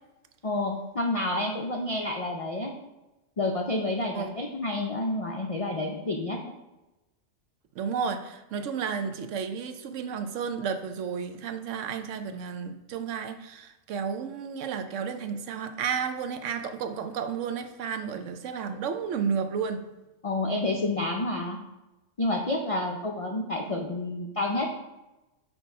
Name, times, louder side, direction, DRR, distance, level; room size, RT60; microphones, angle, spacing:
voice 1, 0.4-2.7 3.4-6.4 20.2-21.6 22.2-24.7, left 2 dB, 55° left, 0 dB, 0.3 m, -29 dB
voice 2, 7.8-19.8, right 6 dB, 75° right, 8 dB, 0.9 m, -32 dB
6.0 x 3.0 x 5.2 m, 1.0 s
omnidirectional pair, 1.3 m